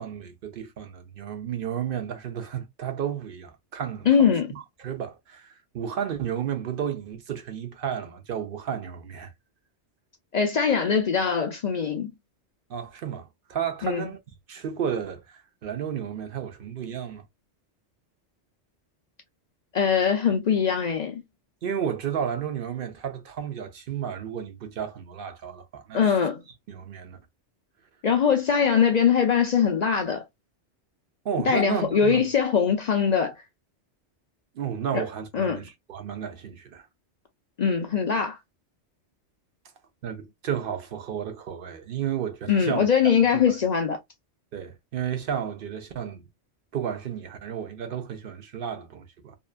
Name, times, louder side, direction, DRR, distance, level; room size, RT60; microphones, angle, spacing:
voice 1, 0.0-9.3 12.7-14.2 14.5-17.2 21.6-26.2 26.7-27.2 31.2-32.2 34.5-36.8 40.0-42.9 43.5-43.6 44.5-46.2 46.7-49.4, right 8 dB, 60° right, 0.7 m, -32 dB
voice 2, 4.1-4.5 10.3-12.1 13.8-14.1 19.7-21.2 25.9-26.4 28.0-30.2 31.5-33.3 34.9-35.0 35.3-35.6 37.6-38.4 42.5-44.0, left 7 dB, 55° left, 0.4 m, -22 dB
2.8 x 2.3 x 2.4 m
omnidirectional pair, 1.2 m